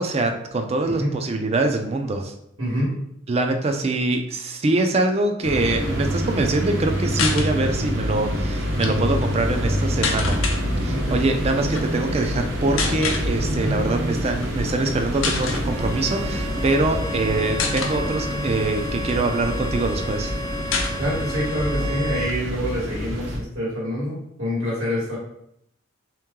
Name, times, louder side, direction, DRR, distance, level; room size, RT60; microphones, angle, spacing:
voice 1, 0.0-2.3 3.3-10.4 10.8-20.3, right 2 dB, 30° right, 5 dB, 0.4 m, -24 dB
voice 2, 2.6-2.9 8.8-9.1 10.9-11.2 13.6-13.8 21.0-25.2, equal, 80° right, -5 dB, 1.5 m, -26 dB
sound 1, 5.4-23.4, equal, 60° right, 0.8 m, -26 dB
sound 2, 7.1-7.5 8.6-8.9 10.0-10.6 11.6-11.8 12.8-13.3 14.3-14.5 14.9-15.0 15.2-15.6 16.5-17.2 17.6-18.0 18.6-19.6 19.9-20.0 20.2-20.3 20.7-21.5 21.8-21.9 22.2-23.3, left 5 dB, 70° left, 0.6 m, -27 dB
Bowed string instrument, 15.5-22.4, left 1 dB, 15° left, 0.6 m, -34 dB
3.7 x 3.0 x 3.6 m, 0.74 s
head